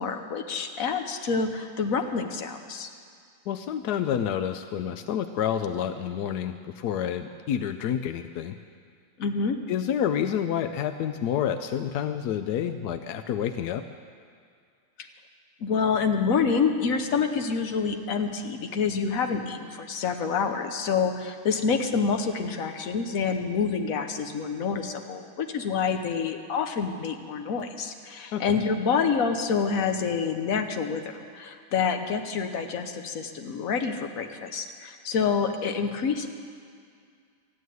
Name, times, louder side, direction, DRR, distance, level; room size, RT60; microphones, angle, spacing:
voice 1, 0.0-2.9 9.2-9.6 15.6-36.3, left 5 dB, 55° left, 6 dB, 1.1 m, -27 dB
voice 2, 3.5-8.5 9.7-13.8 28.3-28.6, left 9 dB, 80° left, 9 dB, 0.8 m, -29 dB
14.5 x 9.3 x 9.4 m, 2.2 s
omnidirectional pair, 2.3 m